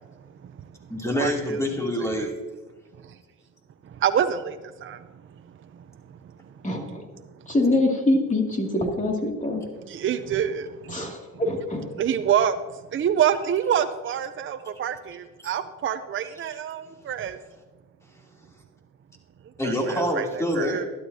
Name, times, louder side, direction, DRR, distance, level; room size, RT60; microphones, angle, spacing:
voice 1, 0.9-2.3 19.6-20.9, equal, 10° left, -1 dB, 2.9 m, -26 dB
voice 2, 4.0-5.0 9.9-11.1 12.0-12.6 12.9-17.4 19.6-20.8, right 9 dB, 40° right, 9 dB, 0.6 m, -26 dB
voice 3, 6.6-7.0 7.5-9.6 10.9-11.9, left 2 dB, 25° left, 1 dB, 2.4 m, -24 dB
12.5 x 12.0 x 2.8 m, 1.3 s
cardioid pair, 90°, 30 cm